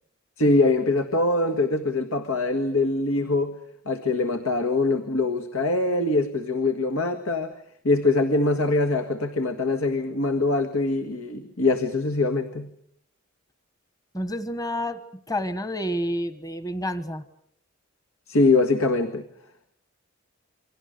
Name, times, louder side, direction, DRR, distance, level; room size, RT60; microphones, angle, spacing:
voice 1, 0.4-3.5 3.9-7.5 7.8-12.7 18.3-19.2, left 2 dB, 85° left, 8 dB, 1.8 m, -23 dB
voice 2, 14.1-15.0 15.3-17.2, equal, 15° left, 12 dB, 1.3 m, -29 dB
29.0 x 25.0 x 6.7 m, 0.66 s
head